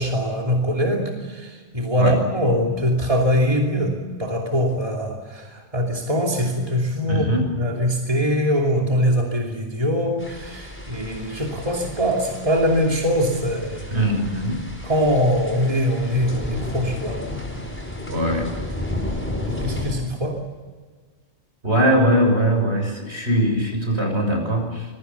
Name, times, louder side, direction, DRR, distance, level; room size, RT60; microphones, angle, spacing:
voice 1, 0.0-7.3 7.6-14.0 14.8-17.2 19.4-20.4, equal, 30° right, 0 dB, 3.0 m, -22 dB
voice 2, 7.1-7.5 13.9-14.6 18.1-18.5 21.6-24.9, equal, 70° right, 3 dB, 6.8 m, -21 dB
sound 1, 10.2-19.9, left 1 dB, 10° left, 5.0 m, -32 dB
26.0 x 22.5 x 7.0 m, 1.5 s
omnidirectional pair, 1.1 m